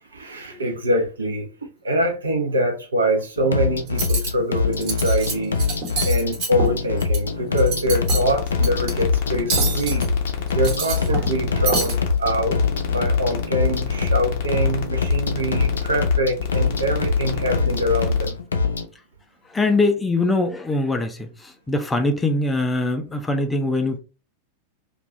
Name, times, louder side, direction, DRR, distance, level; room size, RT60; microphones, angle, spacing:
voice 1, 0.1-1.5 1.8-5.6 6.0-10.1 10.5-12.6 12.9-18.4, right 1 dB, 75° right, 0.7 m, -24 dB
sound 1, 3.4-18.9, left 4 dB, 70° left, 0.3 m, -24 dB
Cutlery silverware, 3.9-4.3 4.7-5.3 5.6-7.2 7.5-8.3 8.6-8.9 9.5-10.1 10.5-11.4 11.7-11.9, right 4 dB, 45° right, 1.2 m, -26 dB
sound 2, 7.9-18.3, left 7 dB, 50° left, 0.7 m, -29 dB
voice 2, 19.5-24.0, left 2 dB, 10° left, 0.4 m, -22 dB
2.4 x 2.3 x 3.0 m
figure-of-eight pair, 90°, 0 cm